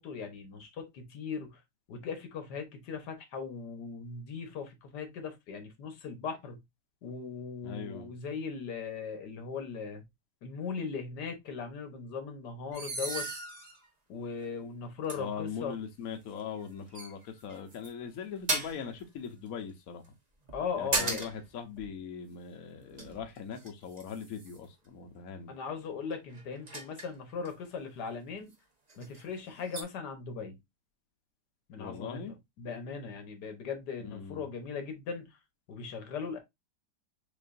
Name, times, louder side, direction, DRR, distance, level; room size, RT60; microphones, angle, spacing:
voice 1, 0.0-1.6 1.9-6.6 7.0-10.0 10.4-13.3 14.1-15.7 20.5-21.3 25.5-28.5 29.0-30.6 31.7-32.2 32.6-35.3 35.7-36.4, left 5 dB, 80° left, 1.6 m, -38 dB
voice 2, 7.6-8.1 15.2-20.0 20.8-25.5 31.8-32.3 34.0-34.4, left 7 dB, 60° left, 1.2 m, -41 dB
sound 1, 12.7-13.9 14.4-14.5 15.1-15.2 16.4-16.6 16.9-17.9 18.5-18.9 20.4-21.5 21.8-21.9 22.7-24.7 26.1-27.5 28.5-28.6 28.9-29.2 29.7-29.8, right 2 dB, 30° right, 0.8 m, -36 dB
6.7 x 2.7 x 2.5 m
omnidirectional pair, 1.8 m